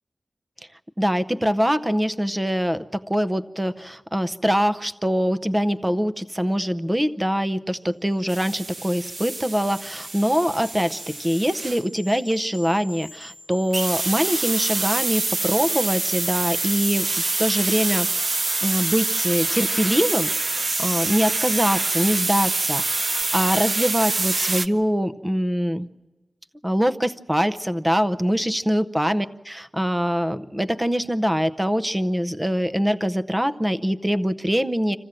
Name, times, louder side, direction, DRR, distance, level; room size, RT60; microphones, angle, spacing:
voice 1, 1.0-25.9 26.6-35.0, equal, 10° right, 11 dB, 0.7 m, -23 dB
sound 1, 8.1-22.7 23.1-23.2, left 2 dB, 35° left, 0.9 m, -46 dB
sound 2, 8.3-11.8 13.7-24.7, right 3 dB, 50° right, 0.7 m, -26 dB
26.0 x 15.5 x 7.6 m, 1.2 s
wide cardioid pair, 100°, 0 cm